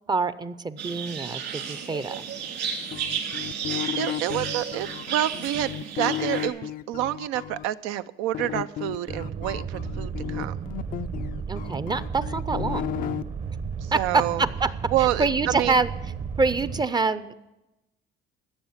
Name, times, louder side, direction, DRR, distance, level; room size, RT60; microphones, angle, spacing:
voice 1, 0.1-2.2 11.5-12.9 13.9-14.7 15.2-15.9 16.4-17.3, right 4 dB, 20° right, 15 dB, 0.5 m, -25 dB
sound 1, 0.8-6.5, right 7 dB, 60° right, 2.7 m, -33 dB
sound 2, 2.9-7.6 8.3-13.2, left 12 dB, 45° left, 0.4 m, -33 dB
voice 2, 3.9-10.6 13.8-14.4 14.9-15.8, right 13 dB, 90° right, 13 dB, 0.6 m, -28 dB
sound 3, 9.1-16.8, right 6 dB, 40° right, 0.8 m, -34 dB
15.5 x 6.9 x 7.2 m, 0.98 s
cardioid pair, 105°, 21 cm